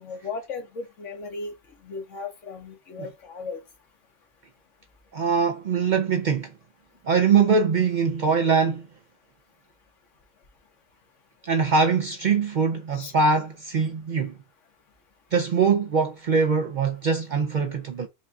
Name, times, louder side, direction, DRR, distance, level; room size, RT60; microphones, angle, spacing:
voice 1, 0.0-1.5 1.8-3.6 12.9-13.1, left 4 dB, 85° left, 1.4 m, -36 dB
voice 2, 5.1-6.5 7.0-8.9 11.4-14.4 15.3-18.1, right 5 dB, 60° right, 0.5 m, -22 dB
5.2 x 2.6 x 2.3 m
omnidirectional pair, 1.2 m